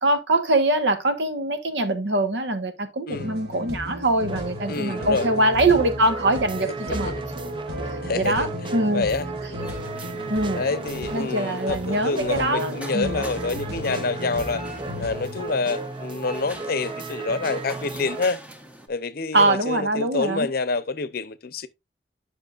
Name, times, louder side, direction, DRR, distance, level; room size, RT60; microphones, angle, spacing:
voice 1, 0.0-7.1 7.9-9.0 10.3-10.6 11.1-13.2 19.3-20.5, right 2 dB, 90° right, 1.2 m, -23 dB
sound 1, 3.1-15.4, left 1 dB, 65° right, 2.0 m, -35 dB
sound 2, 4.3-18.3, right 3 dB, 30° right, 0.6 m, -35 dB
voice 2, 4.7-5.3 6.8-7.2 8.0-9.6 10.5-14.6 15.0-18.4 18.9-21.7, left 4 dB, 60° left, 0.7 m, -27 dB
sound 3, 9.6-18.9, equal, 10° right, 1.1 m, -44 dB
10.0 x 5.8 x 2.4 m
head